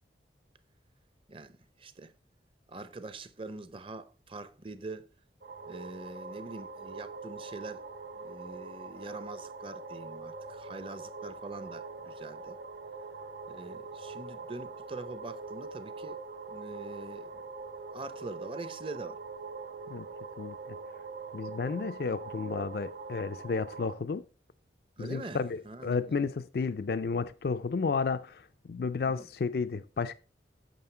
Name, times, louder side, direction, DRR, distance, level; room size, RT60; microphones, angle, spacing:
voice 1, 1.3-2.1 2.7-5.1 5.7-7.8 8.1-12.6 13.5-16.2 16.5-17.4 17.9-19.2 25.0-26.2 29.0-29.3, right 2 dB, 30° right, 0.6 m, -44 dB
sound 1, 5.4-23.9, right 4 dB, 75° right, 2.2 m, -43 dB
voice 2, 20.4-20.8 21.3-24.2 25.0-30.1, left 5 dB, 55° left, 0.4 m, -32 dB
9.3 x 6.3 x 4.4 m
head